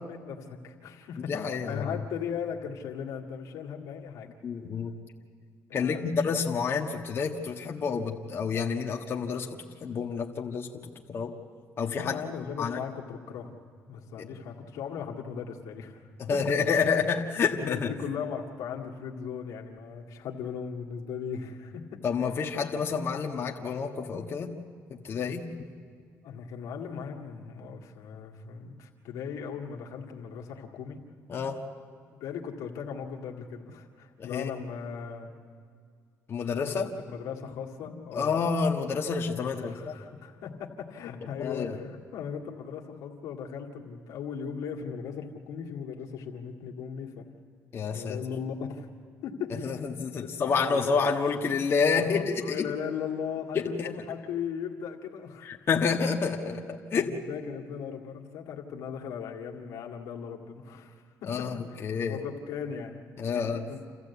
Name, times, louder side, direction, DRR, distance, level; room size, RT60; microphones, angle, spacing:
voice 1, 0.0-4.3 5.7-6.0 12.0-13.5 13.9-16.0 16.3-16.4 17.5-22.4 26.2-31.0 32.2-35.3 36.7-36.8 37.1-38.3 39.6-47.3 47.9-48.9 49.2-49.8 50.2-50.9 52.0-55.5 56.9-60.9 61.2-61.3 61.7-61.8 62.1-63.0 63.3-63.9, left 7 dB, 85° left, 0 dB, 2.2 m, -38 dB
voice 2, 1.3-1.9 4.4-4.9 5.7-10.7 11.1-11.3 11.8-12.2 12.6-12.8 14.2-14.3 16.2-17.9 22.0-24.5 25.0-25.5 31.3-31.6 34.2-34.5 36.3-36.9 38.1-39.9 41.4-41.8 47.7-48.2 49.5-52.7 53.5-54.0 55.4-57.2 61.3-62.2 63.2-63.6, left 5 dB, 45° left, 0 dB, 1.6 m, -29 dB
28.0 x 14.5 x 8.3 m, 2.1 s
cardioid pair, 95°, 6 cm